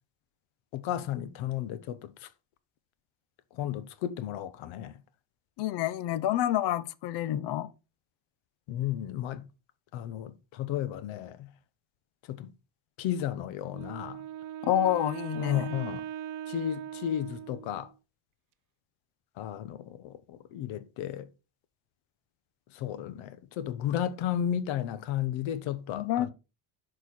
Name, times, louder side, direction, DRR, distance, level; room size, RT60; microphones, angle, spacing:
voice 1, 0.7-2.3 3.5-5.0 8.7-9.5 9.9-11.5 12.3-12.5 13.0-14.2 15.4-16.0 16.5-17.9 19.4-21.3 22.7-26.3, left 11 dB, 80° left, 1.0 m, -34 dB
voice 2, 5.6-7.7 14.6-15.8 25.9-26.3, left 12 dB, 60° left, 0.7 m, -28 dB
Wind instrument woodwind instrument, 13.7-17.9, right 10 dB, 45° right, 0.5 m, -40 dB
11.0 x 4.5 x 4.2 m
cardioid pair, 180°, 46 cm